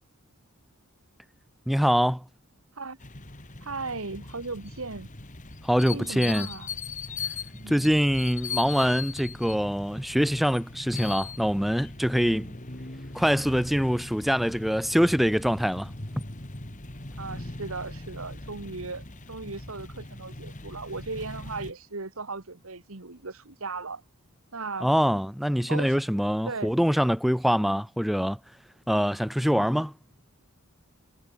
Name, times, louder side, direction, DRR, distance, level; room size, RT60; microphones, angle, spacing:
voice 1, 1.7-2.2 5.6-6.5 7.7-12.6 13.1-15.9 24.8-28.4 28.9-29.9, equal, ahead, 0.4 m, -24 dB
sound 1, 3.0-21.7, left 4 dB, 35° left, 2.5 m, -40 dB
voice 2, 3.6-5.1 5.8-6.7 7.6-7.9 17.2-24.0 24.5-24.9 25.7-26.0 26.5-26.7, right 3 dB, 70° right, 1.7 m, -37 dB
head